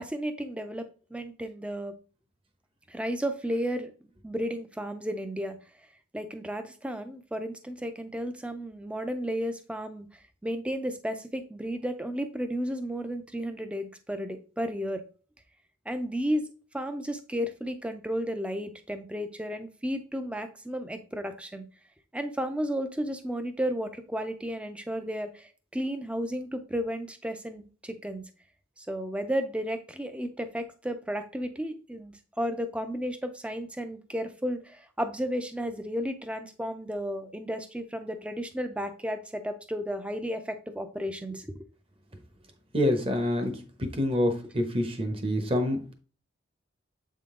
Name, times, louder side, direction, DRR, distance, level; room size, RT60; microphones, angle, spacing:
voice 1, 0.0-1.9 2.9-3.9 4.2-5.6 6.1-10.1 10.4-15.0 15.9-16.5 16.7-21.7 22.1-28.2 28.8-41.6, equal, 5° right, 9 dB, 0.5 m, -33 dB
voice 2, 42.7-43.5 43.8-45.9, left 1 dB, 25° right, 7 dB, 0.9 m, -27 dB
7.6 x 3.7 x 3.7 m, 0.39 s
head